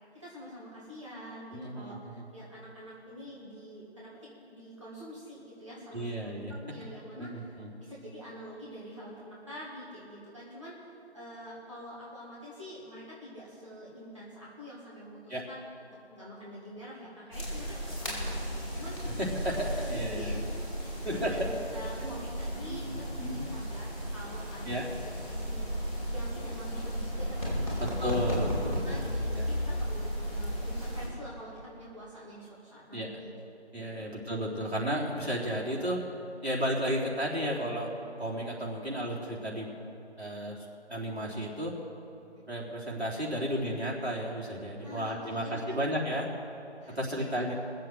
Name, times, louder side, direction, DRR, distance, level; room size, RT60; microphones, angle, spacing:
voice 1, 0.1-4.1 4.4-10.9 11.1-15.7 16.1-19.0 19.6-23.1 23.5-24.9 25.2-28.5 28.8-33.3 33.8-34.1 44.8-45.8 46.8-47.2, equal, 25° right, -8 dB, 2.1 m, -46 dB
voice 2, 1.5-2.2 5.9-6.5 7.2-7.7 15.3-15.4 19.2-20.4 21.0-21.3 21.9-22.2 22.6-23.5 24.7-24.8 28.0-28.8 29.4-29.5 32.9-33.2 33.7-36.0 36.4-37.9 38.2-39.7 40.2-41.7 42.5-46.3 47.0-47.5, equal, 70° right, -4 dB, 3.7 m, -33 dB
sound 1, 17.3-31.1, equal, 30° left, 4.5 m, -34 dB
19.5 x 7.6 x 7.8 m, 2.9 s
figure-of-eight pair, 170°, 34 cm